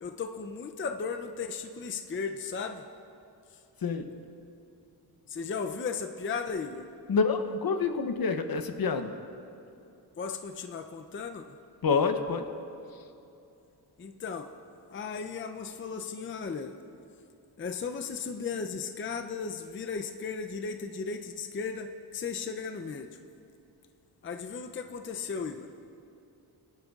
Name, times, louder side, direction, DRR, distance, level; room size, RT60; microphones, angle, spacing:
voice 1, 0.0-2.8 5.3-6.9 10.2-11.4 14.0-14.5 14.9-16.7 17.6-23.1 24.2-25.7, left 5 dB, 30° left, 6 dB, 0.5 m, -36 dB
voice 2, 7.1-9.1 11.8-12.4, left 5 dB, 60° left, 8 dB, 0.8 m, -27 dB
19.0 x 10.5 x 2.4 m, 2.7 s
wide cardioid pair, 80°, 41 cm